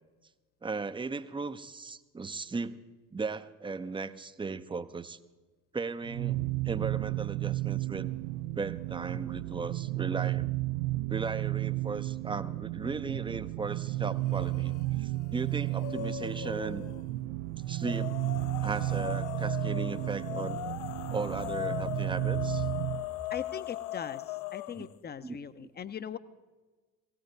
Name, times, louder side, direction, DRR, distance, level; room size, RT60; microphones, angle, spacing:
voice 1, 0.6-2.8 3.1-5.2 5.7-6.4 6.6-8.1 8.5-10.5 11.1-16.9 17.7-18.1 18.6-20.7 21.1-22.7 24.7-24.9 25.2-25.4, right 4 dB, 10° right, 12 dB, 0.7 m, -36 dB
sound 1, 6.0-23.0, right 17 dB, 65° right, 0.6 m, -33 dB
sound 2, 14.2-14.8 15.2-17.0 17.8-24.9, left 16 dB, 55° left, 0.5 m, -39 dB
sound 3, 15.0-15.1 15.5-15.6 16.1-16.2 17.1-23.2, equal, 85° right, 1.1 m, -52 dB
voice 2, 23.3-26.2, left 8 dB, 20° left, 13 dB, 0.8 m, -40 dB
17.5 x 16.5 x 3.9 m, 1.3 s
figure-of-eight pair, 60°, 44 cm